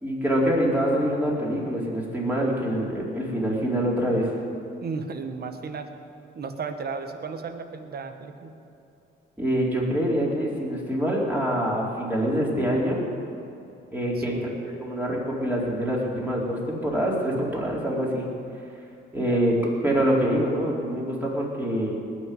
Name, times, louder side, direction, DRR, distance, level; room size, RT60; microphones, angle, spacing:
voice 1, 0.0-4.3 9.4-13.0 13.9-14.5 14.8-18.3 19.1-19.5 19.8-22.0, equal, 10° right, -4 dB, 4.4 m, -25 dB
voice 2, 4.8-5.9 6.3-8.5 14.2-14.5 19.2-19.5, right 5 dB, 50° right, 7 dB, 1.5 m, -34 dB
19.5 x 6.6 x 9.4 m, 2.7 s
cardioid pair, 90°, 20 cm